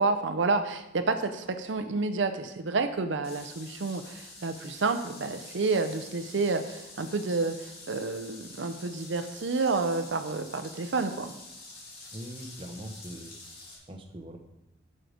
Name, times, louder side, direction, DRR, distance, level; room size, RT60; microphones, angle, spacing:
voice 1, 0.0-11.4, right 3 dB, 70° right, 8 dB, 0.6 m, -29 dB
sound 1, 3.2-13.8, left 2 dB, 50° left, 2.6 m, -47 dB
voice 2, 12.1-13.3 13.9-14.4, equal, 25° right, 3 dB, 0.9 m, -41 dB
9.2 x 6.5 x 5.0 m, 0.91 s
head